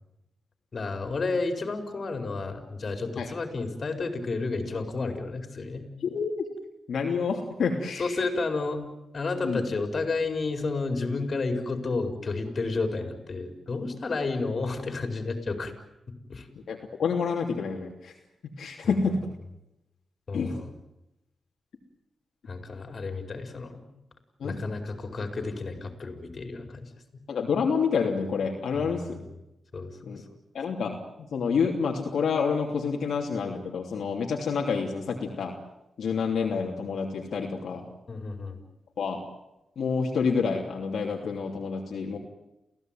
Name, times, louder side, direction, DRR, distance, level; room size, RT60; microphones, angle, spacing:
voice 1, 0.7-5.9 8.0-8.8 9.1-15.7 16.1-16.5 20.3-20.7 22.5-23.8 24.4-27.2 28.7-28.8 29.7-30.1 38.1-38.6, left 3 dB, 50° left, 6 dB, 4.9 m, -31 dB
voice 2, 6.0-6.5 6.9-8.2 9.4-9.6 16.7-18.1 18.6-19.1 20.3-20.6 24.4-24.6 27.3-29.2 30.0-30.2 30.5-35.5 36.0-37.8 39.0-39.2 39.8-42.2, left 5 dB, 75° left, 0 dB, 3.0 m, -28 dB
29.5 x 16.0 x 9.2 m, 0.91 s
cardioid pair, 70°, 0 cm